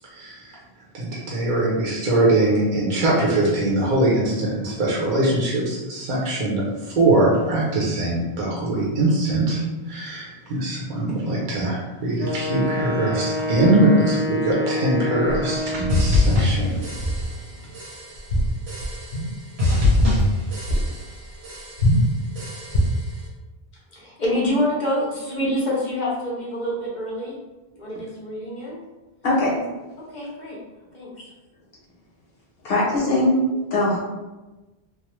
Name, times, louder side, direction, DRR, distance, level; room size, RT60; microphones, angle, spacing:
voice 1, 0.1-0.5 0.9-6.6 7.0-9.6 9.9-16.7, right 2 dB, 55° right, -5 dB, 0.8 m, -22 dB
Wind instrument woodwind instrument, 12.2-16.2, left 1 dB, ahead, 0.6 m, -27 dB
sound 1, 15.3-16.3 17.0-17.3 17.6-17.7 18.2-19.3 19.7-20.3 20.7-20.9 21.8-22.1 22.7-23.1, equal, 85° left, 1.1 m, -23 dB
sound 2, 15.9-17.5 17.7-18.3 18.7-19.3 19.6-21.2 21.4-22.0 22.4-23.0, left 2 dB, 80° right, 1.2 m, -23 dB
voice 2, 23.9-27.3 27.7-28.8 30.1-30.6 30.9-31.1, left 1 dB, 50° left, -5 dB, 0.9 m, -26 dB
voice 3, 29.2-29.5 32.6-34.0, left 1 dB, 70° left, -4 dB, 1.1 m, -20 dB
3.0 x 2.0 x 3.0 m, 1.1 s
omnidirectional pair, 1.1 m